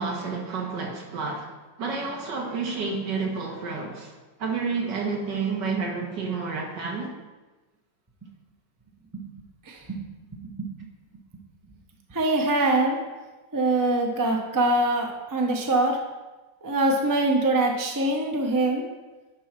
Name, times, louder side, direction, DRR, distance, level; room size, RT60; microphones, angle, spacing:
voice 1, 0.0-1.5 1.8-4.1 4.4-7.1, right 4 dB, 70° right, 0 dB, 2.0 m, -30 dB
voice 2, 9.6-10.1 10.4-10.7 12.1-13.0 13.5-16.0 16.6-18.9, right 2 dB, 20° right, 2 dB, 0.5 m, -24 dB
10.0 x 3.8 x 5.9 m, 1.2 s
omnidirectional pair, 2.0 m